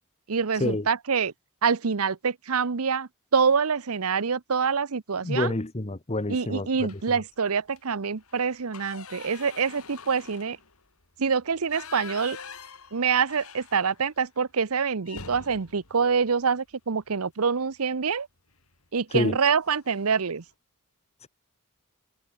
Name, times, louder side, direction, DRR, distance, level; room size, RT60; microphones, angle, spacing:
voice 1, 0.3-1.3 1.6-5.5 6.3-10.6 11.2-12.4 12.9-18.3 18.9-20.4, right 5 dB, 85° right, 0.8 m, -26 dB
voice 2, 5.2-6.9 19.1-19.4 21.2-21.3, left 2 dB, 30° left, 1.1 m, -28 dB
sound 1, 6.9-7.3 7.6-7.8 8.2-14.2 14.5-14.6 15.0-17.2 18.5-18.8 19.2-19.3 19.6-20.2, left 5 dB, 85° left, 6.0 m, -45 dB
head